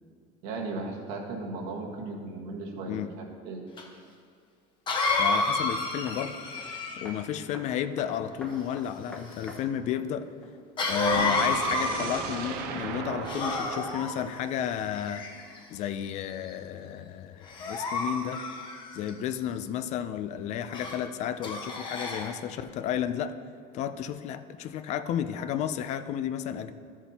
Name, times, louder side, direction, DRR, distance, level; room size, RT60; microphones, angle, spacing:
voice 1, 0.4-3.6, right 3 dB, 85° right, -1 dB, 1.6 m, -36 dB
Cough, 3.8-3.9 4.9-7.2 10.8-12.5 13.2-14.1 14.9-15.6 16.2-16.5 17.5-19.1 20.7-21.0 21.4-22.3, left 2 dB, 30° left, 1.1 m, -30 dB
voice 2, 5.2-6.4 7.0-10.3 10.9-15.3 15.7-18.4 18.9-23.4 23.7-26.7, left 10 dB, 45° left, 12 dB, 0.4 m, -32 dB
sound 1, 6.1-6.2 6.6-6.7 7.0-7.2 7.5-7.7 8.0-10.1 10.4-10.5, left 1 dB, 5° left, 1.0 m, -46 dB
sound 2, 11.1-15.1, right 6 dB, 65° right, 0.8 m, -37 dB
13.0 x 7.1 x 2.9 m, 2.2 s
cardioid pair, 155°, 16 cm